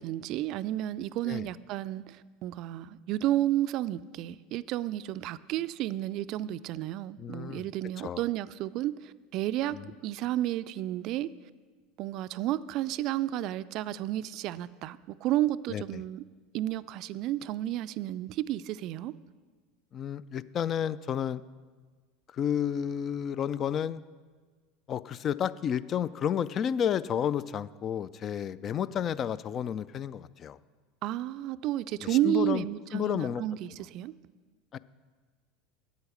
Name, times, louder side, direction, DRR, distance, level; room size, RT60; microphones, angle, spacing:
voice 1, 0.0-9.8 10.0-11.3 12.0-16.2 16.5-19.1 31.0-34.1, right 14 dB, 55° right, 0.3 m, -32 dB
voice 2, 7.2-7.7 8.0-8.2 9.7-9.9 15.7-16.0 19.9-21.4 22.3-24.0 24.9-30.6 32.0-32.7 32.9-33.4 34.7-34.8, left 9 dB, 40° left, 0.3 m, -31 dB
8.5 x 8.1 x 6.5 m
hypercardioid pair, 80°, 0 cm